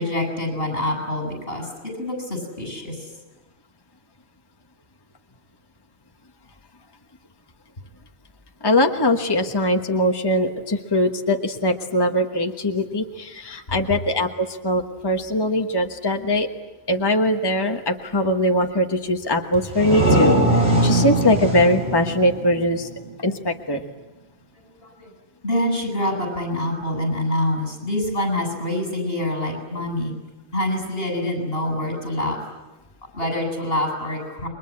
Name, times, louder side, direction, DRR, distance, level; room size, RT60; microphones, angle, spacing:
voice 1, 0.0-1.7 2.0-3.0 24.8-25.1 25.4-30.1 30.5-32.4 33.1-34.5, left 1 dB, 65° left, 5 dB, 8.0 m, -25 dB
voice 2, 8.6-16.5 16.9-22.9 23.2-23.8 29.7-29.8, left 1 dB, 25° left, 4 dB, 1.3 m, -21 dB
sound 1, 19.5-23.1, right 1 dB, 75° right, 3.5 m, -21 dB
29.0 x 22.5 x 8.7 m, 1.1 s
omnidirectional pair, 1.1 m